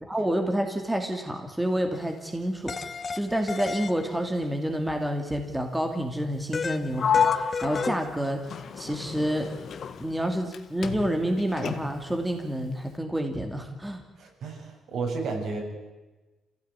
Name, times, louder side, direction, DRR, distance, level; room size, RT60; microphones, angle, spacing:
voice 1, 0.0-8.4 8.8-9.5 10.0-14.0, equal, 10° right, 4 dB, 2.5 m, -29 dB
sound 1, 2.0-2.1 2.7-4.5 6.5-8.2, left 5 dB, 35° left, 0.8 m, -33 dB
Sliding door, 7.0-10.6 10.8-12.1, left 7 dB, 55° left, 1.7 m, -30 dB
voice 2, 14.2-15.6, right 4 dB, 70° right, 1 dB, 7.0 m, -32 dB
27.0 x 16.5 x 9.8 m, 1.2 s
cardioid pair, 115°, 0 cm